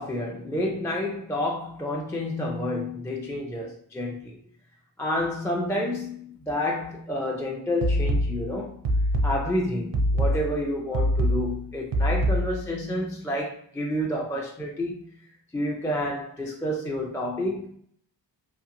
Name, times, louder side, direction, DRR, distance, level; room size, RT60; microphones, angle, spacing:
voice 1, 0.0-4.4 5.0-8.8 9.2-15.3 15.5-17.8, left 1 dB, 5° left, 0.3 m, -29 dB
sound 1, 7.8-12.8, equal, 75° right, 0.6 m, -25 dB
2.9 x 2.5 x 2.5 m
wide cardioid pair, 125°, 43 cm